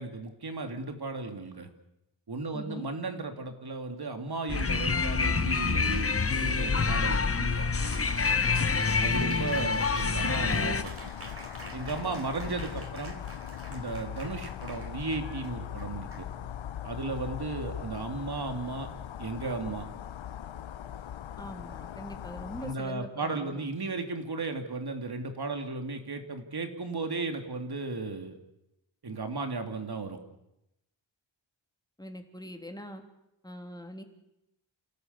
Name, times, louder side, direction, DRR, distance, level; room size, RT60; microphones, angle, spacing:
voice 1, 0.0-1.7 2.3-6.1 6.3-7.7 9.0-11.0 11.7-13.2 13.7-16.3 16.8-18.9 19.2-19.9 22.6-28.4 29.0-30.2, right 3 dB, 55° right, 6 dB, 3.2 m, -35 dB
voice 2, 2.5-2.9 7.0-7.4 8.4-8.8 21.4-23.6 32.0-33.0 33.4-34.0, equal, 10° left, 4 dB, 3.0 m, -43 dB
sound 1, 4.5-10.8, left 4 dB, 30° left, 1.0 m, -27 dB
Cheering, 7.8-16.8, right 2 dB, 30° right, 4.0 m, -47 dB
sound 2, 10.3-22.7, left 10 dB, 80° left, 0.9 m, -40 dB
29.0 x 17.0 x 8.4 m, 0.89 s
wide cardioid pair, 110°, 45 cm